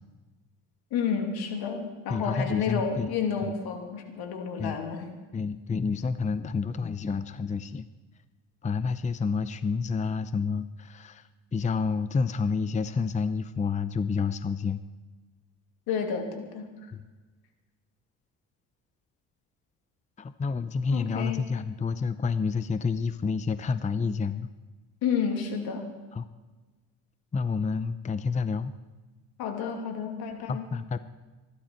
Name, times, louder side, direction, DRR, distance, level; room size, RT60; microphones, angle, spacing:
voice 1, 0.9-5.1 15.9-16.7 20.9-21.4 25.0-25.9 29.4-30.7, left 6 dB, 70° left, 3 dB, 2.8 m, -30 dB
voice 2, 2.1-3.1 3.5-3.6 4.6-4.8 5.3-7.9 8.6-11.2 11.5-14.8 16.9-17.0 20.2-24.5 26.1-26.2 27.3-28.7 30.5-31.0, left 5 dB, 20° left, 13 dB, 0.6 m, -29 dB
25.0 x 11.5 x 4.5 m, 1.2 s
supercardioid pair, 75°, 39 cm